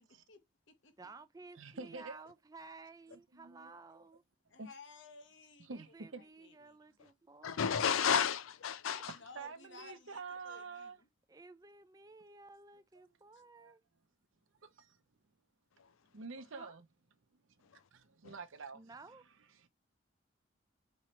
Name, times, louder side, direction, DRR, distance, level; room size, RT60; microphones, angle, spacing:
voice 1, 0.0-1.1 4.5-6.8 9.1-11.1 13.3-13.4, left 4 dB, 60° left, 0.9 m, -57 dB
voice 2, 1.0-4.2 5.7-7.7 10.1-10.3 10.6-10.9 11.3-13.8 16.5-16.8 18.7-19.2, right 3 dB, 20° right, 0.4 m, -55 dB
voice 3, 1.6-2.2 3.1-4.0 4.6-4.7 5.7-6.2 9.4-11.0 13.6-13.7 14.6-15.0 16.1-16.8 17.9-18.8 19.6-19.7, right 4 dB, 75° right, 0.7 m, -47 dB
voice 4, 7.4-9.2 15.8-15.9 17.7-17.8 18.2-18.3, left 7 dB, 85° left, 0.4 m, -32 dB
4.4 x 3.1 x 2.9 m
head